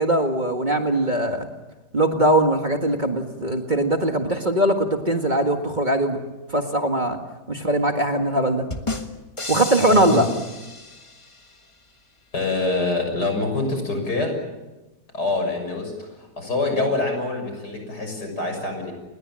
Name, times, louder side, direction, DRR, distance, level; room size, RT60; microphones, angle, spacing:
voice 1, 0.0-1.5 1.9-6.2 6.5-7.2 7.5-8.7 9.5-10.3, right 1 dB, 25° right, 4 dB, 1.9 m, -21 dB
sound 1, 8.7-11.5, left 2 dB, 20° left, 1.4 m, -33 dB
voice 2, 9.9-10.3 12.3-14.4 15.1-18.9, left 2 dB, 75° left, 4 dB, 7.2 m, -25 dB
29.5 x 21.0 x 7.6 m, 1.1 s
omnidirectional pair, 1.8 m